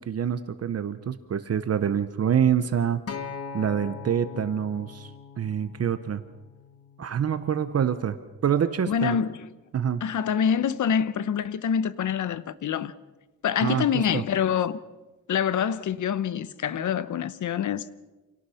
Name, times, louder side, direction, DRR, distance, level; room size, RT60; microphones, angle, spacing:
voice 1, 0.0-3.0 3.5-5.1 5.4-6.2 7.0-8.2 8.4-9.2 9.7-10.0 13.6-13.9 14.1-14.2, right 8 dB, 45° right, 0.9 m, -26 dB
Acoustic guitar, 3.1-7.3 8.2-8.3, left 6 dB, 45° left, 1.3 m, -41 dB
voice 2, 8.9-9.5 10.0-12.9 13.4-14.8 15.3-17.9, left 8 dB, 60° left, 0.9 m, -26 dB
27.0 x 18.0 x 5.7 m
wide cardioid pair, 160°, 34 cm